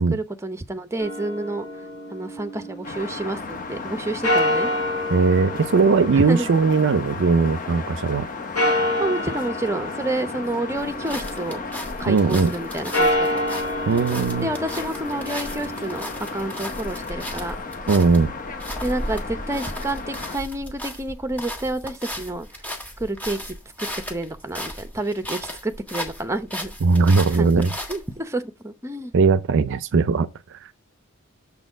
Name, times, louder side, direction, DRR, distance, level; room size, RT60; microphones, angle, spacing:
voice 1, 0.1-1.6 2.1-4.7 6.1-6.5 9.0-11.6 12.0-13.4 14.4-17.6 18.8-22.7 23.0-26.7 27.3-27.5 27.9-29.1, right 2 dB, 15° right, 0.7 m, -29 dB
sound 1, 1.0-3.1 4.2-7.6 8.5-11.5 12.8-16.8, left 1 dB, 75° left, 4.4 m, -27 dB
sound 2, 2.8-20.4, left 4 dB, 40° left, 1.0 m, -34 dB
voice 2, 5.1-8.3 12.1-12.5 13.9-14.5 17.9-18.3 26.8-27.7 29.1-30.7, right 4 dB, 55° right, 0.4 m, -19 dB
sound 3, 10.8-28.2, equal, 5° left, 1.4 m, -35 dB
7.1 x 4.1 x 5.0 m
head